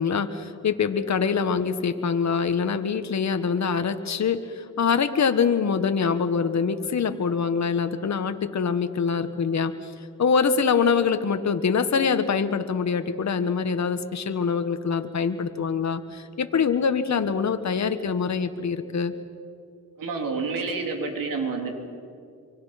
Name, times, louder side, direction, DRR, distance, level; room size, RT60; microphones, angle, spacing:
voice 1, 0.0-9.9 10.2-19.1, left 6 dB, 55° left, 9 dB, 1.5 m, -24 dB
voice 2, 20.0-21.7, right 4 dB, 85° right, 3 dB, 3.2 m, -28 dB
26.0 x 24.5 x 5.9 m, 2.4 s
cardioid pair, 65°, 33 cm